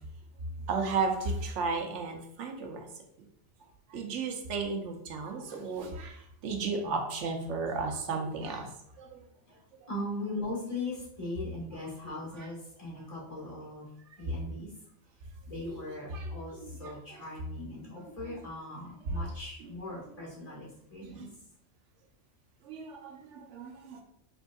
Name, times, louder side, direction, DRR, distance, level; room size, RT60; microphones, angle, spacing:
voice 1, 0.7-2.9 3.9-8.7 9.0-9.2 9.8-9.9 12.4-12.5 15.6-16.3 16.6-16.9 17.9-18.5 19.0-19.2 19.6-19.7 21.0-21.3 22.6-24.0, right 4 dB, 85° right, 3 dB, 1.0 m, -34 dB
voice 2, 9.9-13.9 14.2-14.7 15.5-21.2, left 2 dB, 30° left, -6 dB, 1.8 m, -39 dB
5.3 x 3.5 x 2.3 m, 0.72 s
omnidirectional pair, 1.2 m